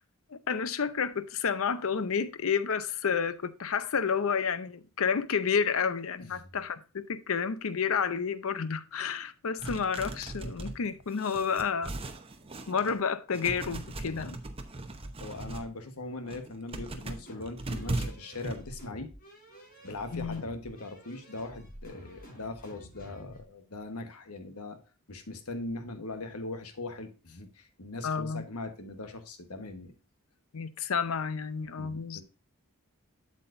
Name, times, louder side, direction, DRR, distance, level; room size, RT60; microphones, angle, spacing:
voice 1, 0.3-12.0 12.7-14.4 20.1-20.4 28.0-28.4 30.5-32.2, left 6 dB, 65° left, 0.6 m, -30 dB
sound 1, 9.6-13.0 13.3-15.7 16.1-18.6, right 2 dB, 25° right, 0.8 m, -38 dB
voice 2, 15.2-19.1 19.8-24.8 25.1-29.9 31.8-32.2, left 2 dB, 80° left, 1.2 m, -40 dB
sound 2, 17.3-23.4, equal, 45° left, 4.3 m, -49 dB
7.8 x 7.4 x 2.6 m
head